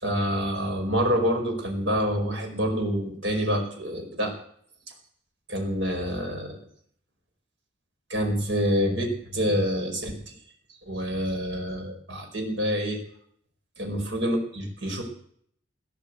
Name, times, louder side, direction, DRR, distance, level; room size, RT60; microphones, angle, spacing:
voice 1, 0.0-4.3 5.5-6.6 8.1-10.2 10.9-13.0 13.8-15.0, equal, 70° right, 3 dB, 4.7 m, -27 dB
18.0 x 9.8 x 8.2 m, 0.64 s
head